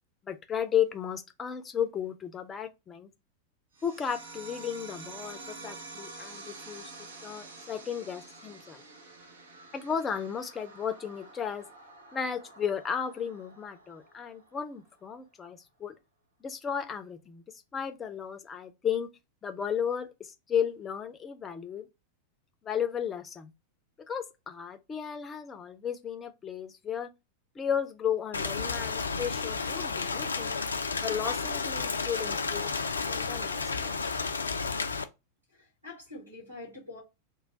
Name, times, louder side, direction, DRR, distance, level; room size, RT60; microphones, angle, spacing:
voice 1, 0.2-3.1 3.8-6.9 7.2-8.8 9.7-11.7 12.1-16.0 16.4-17.4 17.7-19.1 19.4-21.9 22.6-23.5 24.1-27.1 27.6-30.6 31.0-32.7 33.1-33.9, left 8 dB, 20° left, 0.5 m, -34 dB
sound 1, 3.8-14.8, right 3 dB, 65° right, 0.7 m, -48 dB
Rain, 28.3-35.0, left 4 dB, 75° left, 0.3 m, -32 dB
voice 2, 35.5-37.0, left 2 dB, 85° right, 1.3 m, -45 dB
3.2 x 2.2 x 3.8 m
figure-of-eight pair, 90°, 0 cm